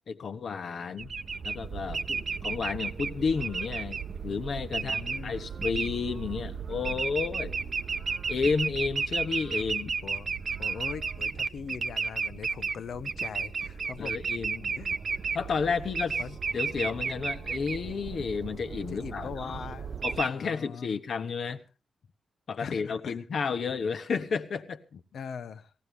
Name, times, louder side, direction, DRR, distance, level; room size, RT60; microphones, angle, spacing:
voice 1, 0.1-1.1 1.4-4.0 4.2-7.6 8.3-9.9 14.0-14.7 15.3-16.2 16.5-19.6 20.0-21.6 22.5-24.8, left 5 dB, 70° left, 1.2 m, -31 dB
sound 1, 1.0-20.3, right 5 dB, 55° right, 0.7 m, -33 dB
voice 2, 4.7-5.4 10.0-10.3 10.6-14.1 14.8-15.3 16.2-16.4 18.9-19.9 20.3-21.0 22.6-23.4 24.9-25.7, left 7 dB, 85° left, 0.8 m, -41 dB
19.0 x 15.5 x 3.4 m
wide cardioid pair, 100°, 0 cm